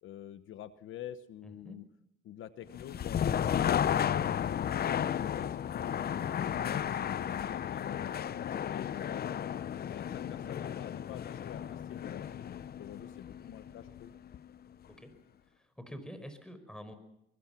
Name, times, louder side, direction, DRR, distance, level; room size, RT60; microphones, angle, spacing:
voice 1, 0.0-1.8 2.2-4.1 4.6-12.4 12.8-14.1, left 10 dB, 80° left, 12 dB, 1.1 m, -48 dB
voice 2, 1.4-1.8 14.9-15.1 15.5-16.9, equal, 5° left, 10 dB, 5.1 m, -47 dB
sound 1, 2.7-14.6, left 9 dB, 50° left, 0.7 m, -33 dB
24.0 x 21.5 x 6.0 m, 0.81 s
cardioid pair, 90°, 20 cm